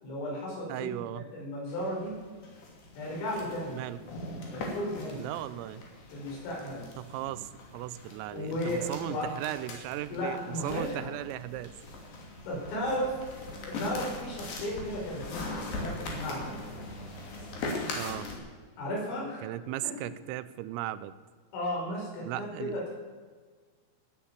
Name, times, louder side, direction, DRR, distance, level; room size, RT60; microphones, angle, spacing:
voice 1, 0.0-2.2 2.9-3.8 4.5-5.3 6.1-6.9 8.3-9.3 10.1-11.1 12.5-13.1 13.6-16.6 18.8-19.4 19.8-19.9 21.5-22.9, left 1 dB, 80° left, -3 dB, 8.0 m, -35 dB
voice 2, 0.7-1.2 3.7-4.0 5.1-5.8 7.0-11.8 18.0-18.3 19.4-21.1 22.3-22.9, right 14 dB, 90° right, 15 dB, 3.4 m, -37 dB
sound 1, 1.7-18.4, left 2 dB, 50° left, 4.0 m, -41 dB
17.0 x 9.8 x 7.3 m, 1.5 s
omnidirectional pair, 5.9 m